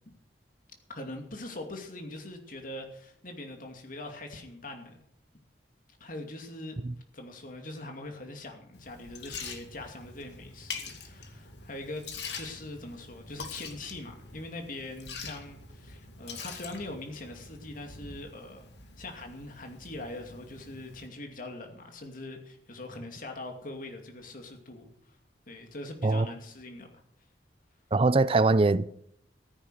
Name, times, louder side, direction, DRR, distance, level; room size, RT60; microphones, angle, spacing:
voice 1, 0.9-5.0 6.0-6.8 7.1-18.7 19.0-25.2 25.5-26.9, left 2 dB, 50° left, 2.5 m, -42 dB
Liquid, 8.7-21.1, left 5 dB, 75° left, 2.2 m, -44 dB
voice 2, 27.9-28.9, right 3 dB, 30° right, 0.5 m, -22 dB
14.5 x 9.8 x 6.4 m
head